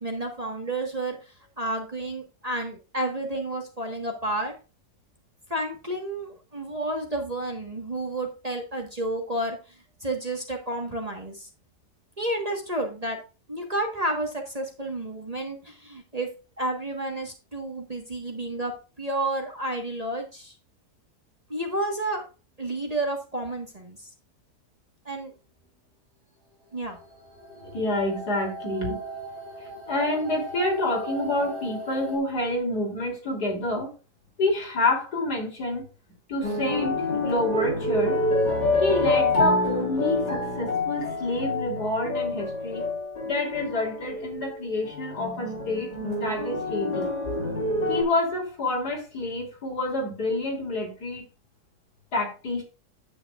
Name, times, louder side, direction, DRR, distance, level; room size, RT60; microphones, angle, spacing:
voice 1, 0.0-4.5 5.5-11.5 12.2-13.2 13.5-16.3 16.6-18.7 19.0-20.6 21.5-22.2 22.6-24.1 25.0-25.3 26.7-27.0, right 1 dB, 25° right, 2 dB, 1.5 m, -31 dB
sound 1, 26.7-32.2, right 1 dB, 40° right, 2.9 m, -38 dB
voice 2, 27.6-29.0 29.9-33.9 34.4-35.9 36.3-38.2 38.8-42.8 43.2-45.9 46.2-47.1 47.9-51.2 52.1-52.6, left 2 dB, 70° left, 0 dB, 3.9 m, -28 dB
sound 2, 36.4-48.0, left 2 dB, 85° left, 3.8 m, -27 dB
9.5 x 8.1 x 2.4 m, 0.32 s
omnidirectional pair, 1.7 m